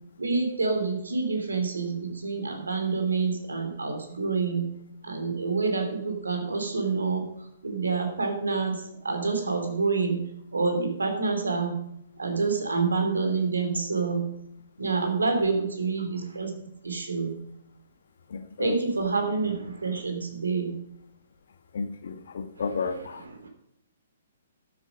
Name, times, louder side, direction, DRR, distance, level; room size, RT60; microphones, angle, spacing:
voice 1, 0.2-4.7 5.0-7.3 7.6-10.2 10.5-11.7 12.2-14.2 14.8-16.5 16.8-17.3 18.6-20.7 23.4-23.5, right 4 dB, 75° right, 5 dB, 2.9 m, -27 dB
voice 2, 18.3-18.8 21.7-23.2, left 5 dB, 60° left, 9 dB, 1.2 m, -32 dB
12.5 x 7.8 x 5.2 m, 0.76 s
figure-of-eight pair, 125°, 0 cm